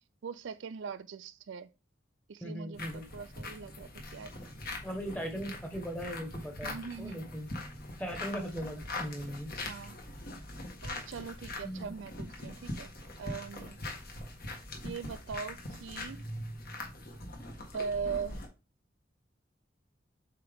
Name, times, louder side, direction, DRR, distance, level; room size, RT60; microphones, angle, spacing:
voice 1, 0.2-1.7 2.3-4.3 4.9-5.0 6.6-7.2 9.6-10.0 10.8-12.9 13.2-13.8 14.8-16.3 17.7-18.4, right 6 dB, 75° right, 0.4 m, -40 dB
voice 2, 2.4-3.1 4.8-7.5 8.0-9.6 11.6-11.9, equal, 10° left, 1.2 m, -39 dB
sound 1, 2.7-18.5, left 2 dB, 50° left, 1.5 m, -42 dB
7.7 x 3.7 x 3.5 m
head